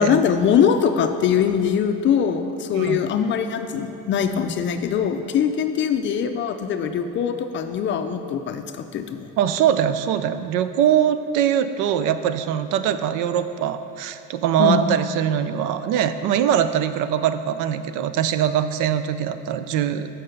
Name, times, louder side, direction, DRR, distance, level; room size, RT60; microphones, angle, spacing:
voice 1, 0.0-9.3 14.6-14.9, left 7 dB, 35° left, 7 dB, 0.4 m, -22 dB
voice 2, 9.4-20.1, right 9 dB, 75° right, 11 dB, 0.5 m, -22 dB
7.7 x 5.4 x 6.5 m, 2.6 s
cardioid pair, 155°, 32 cm